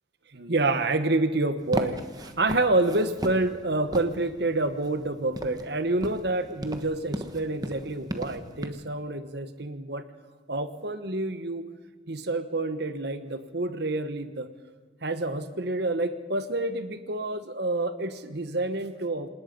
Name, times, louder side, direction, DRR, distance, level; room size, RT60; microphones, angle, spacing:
voice 1, 0.3-2.0 2.4-10.0 10.5-11.6 12.1-14.5 15.0-19.3, right 2 dB, 55° right, 10 dB, 1.2 m, -28 dB
sound 1, 1.6-8.7, right 1 dB, 20° right, 1.2 m, -37 dB
27.0 x 19.0 x 5.4 m, 1.4 s
head